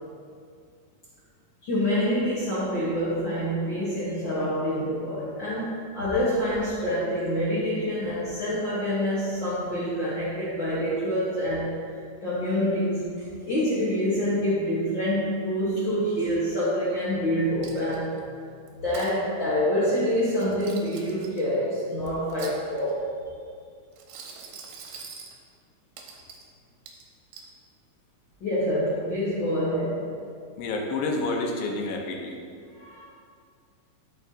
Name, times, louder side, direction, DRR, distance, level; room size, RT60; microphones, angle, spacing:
voice 1, 1.6-11.7 12.2-18.1 18.8-23.1 28.4-30.1 32.7-33.0, equal, 60° left, -9 dB, 1.2 m, -26 dB
Coin (dropping), 17.6-18.2 18.7-19.1 20.3-21.4 22.1-23.0 23.9-25.4 26.0-26.5 26.9-27.5, right 5 dB, 85° right, 2.5 m, -44 dB
voice 2, 30.6-32.4, left 2 dB, 80° left, 1 dB, 2.5 m, -29 dB
12.0 x 5.5 x 2.7 m, 2.2 s
omnidirectional pair, 4.0 m